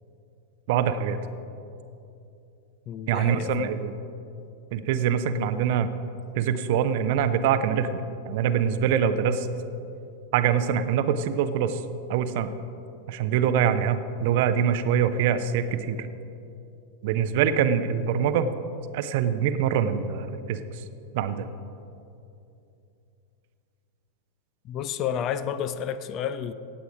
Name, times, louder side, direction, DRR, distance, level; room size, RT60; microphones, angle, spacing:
voice 1, 0.7-1.2 3.1-3.9 4.7-5.9 6.4-9.5 10.3-11.8 12.1-12.5 13.1-16.1 17.0-18.5 18.9-20.6 21.1-21.5, right 8 dB, 50° right, 11 dB, 0.7 m, -24 dB
voice 2, 2.9-3.7 24.6-26.5, left 9 dB, 35° left, 13 dB, 0.5 m, -30 dB
17.5 x 8.3 x 5.0 m, 2.7 s
figure-of-eight pair, 90°, 0 cm